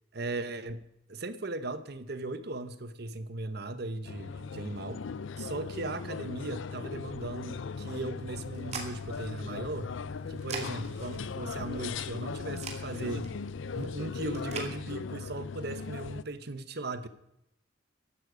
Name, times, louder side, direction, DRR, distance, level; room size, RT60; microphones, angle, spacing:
voice 1, 0.1-0.8 1.1-5.0 5.4-9.9 10.3-13.3 13.7-17.1, right 2 dB, 55° right, 12 dB, 1.0 m, -37 dB
sound 1, 4.0-16.2, left 5 dB, 80° left, 0.5 m, -38 dB
sound 2, 8.2-14.7, right 4 dB, 35° right, 2.4 m, -45 dB
15.0 x 11.5 x 5.1 m, 0.80 s
head